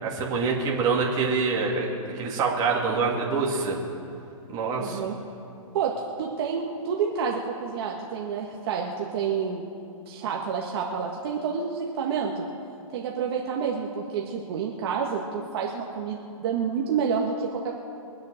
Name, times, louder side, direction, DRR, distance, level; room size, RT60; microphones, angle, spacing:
voice 1, 0.0-1.9 2.1-3.8 4.5-5.0, right 4 dB, 20° right, -2 dB, 2.4 m, -25 dB
voice 2, 4.8-5.1 5.7-5.9 6.2-9.7 10.1-12.4 12.9-17.8, right 6 dB, 45° right, -1 dB, 1.4 m, -29 dB
23.5 x 8.0 x 6.4 m, 2.7 s
hypercardioid pair, 155°, 18 cm